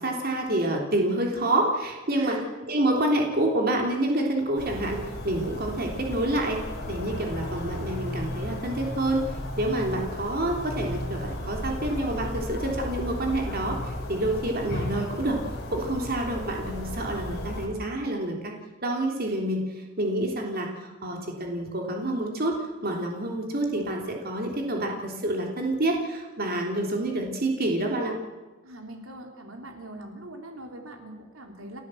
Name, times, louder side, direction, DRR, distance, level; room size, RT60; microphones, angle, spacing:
voice 1, 0.0-2.4 2.7-5.0 5.2-6.6 6.9-9.3 9.6-15.4 15.7-18.5 18.8-19.7 20.0-22.6 22.8-28.1, right 1 dB, 45° right, 1 dB, 3.3 m, -28 dB
voice 2, 2.1-2.5 28.6-31.8, right 1 dB, 80° right, 3 dB, 3.6 m, -40 dB
sound 1, 4.6-17.7, left 1 dB, 55° left, 5.4 m, -34 dB
30.0 x 14.5 x 7.8 m, 1.3 s
head